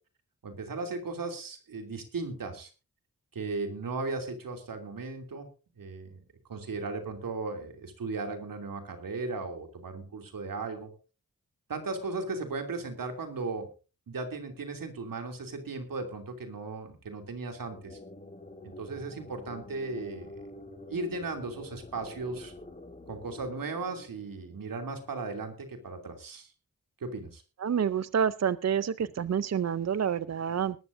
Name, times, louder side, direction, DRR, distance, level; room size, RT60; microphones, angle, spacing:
voice 1, 0.4-2.7 3.3-5.5 5.8-6.2 6.5-10.9 11.7-13.7 14.1-18.0 18.6-20.4 20.9-22.5 23.1-26.5 27.0-27.4, right 3 dB, 85° right, 5 dB, 2.8 m, -36 dB
sound 1, 17.5-25.0, left 1 dB, 25° left, 2.8 m, -48 dB
voice 2, 27.6-30.8, right 7 dB, 55° right, 16 dB, 0.6 m, -28 dB
20.5 x 12.0 x 2.6 m, 0.33 s
cardioid pair, 55°, 33 cm